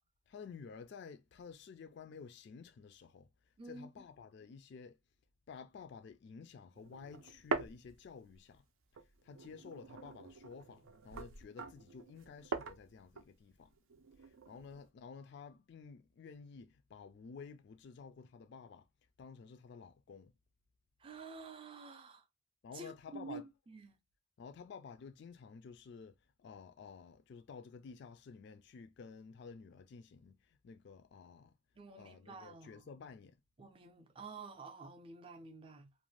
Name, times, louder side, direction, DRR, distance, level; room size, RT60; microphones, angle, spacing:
voice 1, 0.3-3.3 3.6-5.0 5.5-8.6 9.2-13.7 14.2-18.9 19.2-20.3 22.6-23.4 24.4-26.1 26.4-31.5 32.0-33.3, left 5 dB, 55° left, 0.3 m, -52 dB
voice 2, 3.6-3.9 21.0-22.2 22.7-24.0 31.8-32.8 33.6-35.9, right 4 dB, 25° right, 0.4 m, -50 dB
sound 1, 6.8-8.6 9.0-14.9, right 4 dB, 85° right, 0.5 m, -44 dB
2.5 x 2.2 x 3.0 m
head